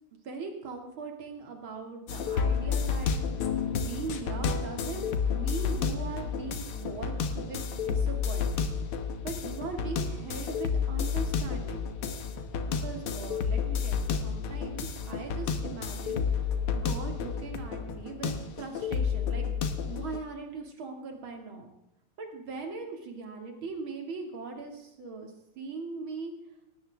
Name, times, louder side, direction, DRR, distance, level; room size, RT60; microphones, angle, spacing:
voice 1, 0.2-3.3 3.7-8.7 9.2-11.8 12.6-16.2 16.7-19.4 19.9-21.7 22.2-26.3, right 4 dB, 70° right, 3 dB, 3.1 m, -40 dB
sound 1, 2.1-20.2, left 6 dB, 85° left, 2.1 m, -31 dB
18.5 x 13.5 x 3.5 m, 0.90 s
omnidirectional pair, 2.4 m